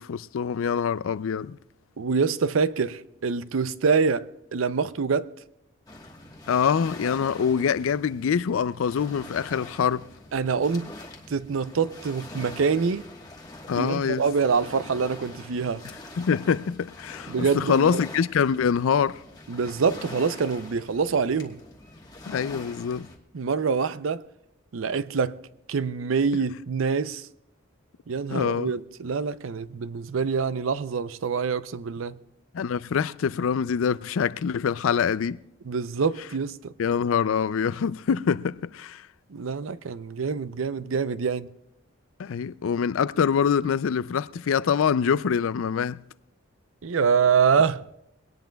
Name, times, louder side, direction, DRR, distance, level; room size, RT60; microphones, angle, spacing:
voice 1, 0.0-1.6 6.5-10.0 13.7-14.2 16.2-19.2 22.3-23.1 28.3-28.7 32.5-35.4 36.8-39.0 42.2-46.0, left 7 dB, 85° left, 0.4 m, -25 dB
voice 2, 2.0-5.3 10.3-10.9 11.3-13.1 13.8-15.8 17.3-18.0 19.5-21.6 23.3-24.2 24.7-25.4 25.7-27.3 28.1-32.2 35.6-36.7 39.3-41.5 46.8-47.9, right 5 dB, 80° right, 0.5 m, -25 dB
Waves surf, 5.9-23.2, left 2 dB, 20° left, 1.3 m, -44 dB
22.0 x 18.0 x 2.3 m
head